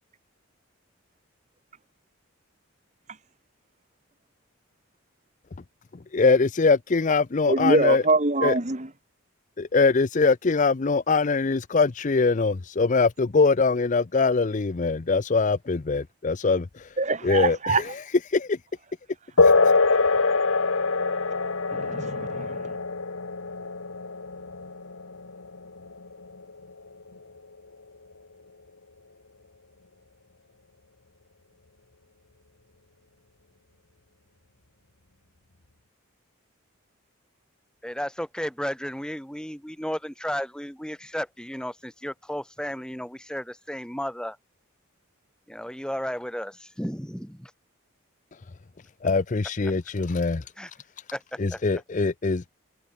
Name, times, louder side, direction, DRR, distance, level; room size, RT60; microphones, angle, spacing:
voice 1, 6.1-8.0 8.4-8.5 9.6-16.7 17.2-18.0 18.3-18.6 19.4-19.5 49.0-50.4 51.4-52.5, left 4 dB, 35° left, 0.5 m, -22 dB
voice 2, 7.5-8.9 17.0-17.8 21.7-22.6, right 3 dB, 35° right, 1.7 m, -24 dB
sound 1, 19.4-27.4, left 4 dB, 80° left, 1.6 m, -24 dB
voice 3, 37.8-44.4 45.5-47.5 49.6-49.7 50.6-50.7 51.1-51.8, equal, 5° left, 4.7 m, -33 dB
head